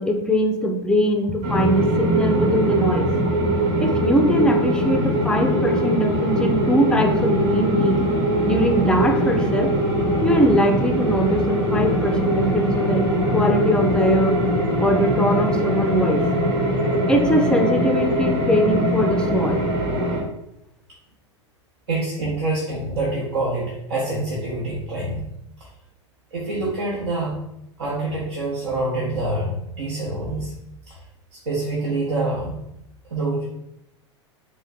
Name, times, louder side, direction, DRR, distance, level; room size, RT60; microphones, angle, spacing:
voice 1, 0.0-3.1 3.8-8.1 8.4-9.7 10.2-13.1 13.3-14.4 14.8-16.2 17.1-19.7, equal, 5° left, 5 dB, 0.5 m, -21 dB
sound 1, 1.4-20.2, equal, 45° right, 1.2 m, -21 dB
voice 2, 21.9-25.2 25.6-25.7 26.3-27.4 27.8-30.5 30.9-31.0 31.3-32.6 33.1-33.5, right 2 dB, 65° right, -4 dB, 1.0 m, -26 dB
3.5 x 3.1 x 3.7 m, 0.82 s
figure-of-eight pair, 85°, 15 cm